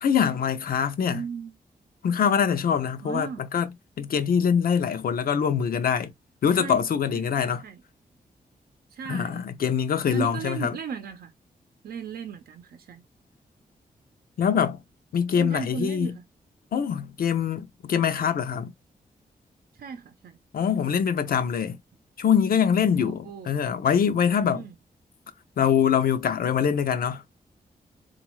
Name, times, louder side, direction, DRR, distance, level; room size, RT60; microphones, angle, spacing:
voice 1, 0.0-1.2 2.0-6.1 6.4-7.6 9.1-10.8 14.4-14.8 15.1-16.2 16.7-18.7 20.5-21.8 22.2-24.7 25.6-27.2, left 7 dB, 70° left, 0.6 m, -24 dB
voice 2, 1.1-1.5 3.0-3.5 6.5-6.8 7.4-7.8 8.9-9.4 10.1-11.3 11.8-13.0 15.4-16.2 19.8-20.4 23.0-23.6 24.4-24.7, right 6 dB, 90° right, 0.6 m, -36 dB
3.9 x 2.5 x 3.0 m
wide cardioid pair, 155°, 15 cm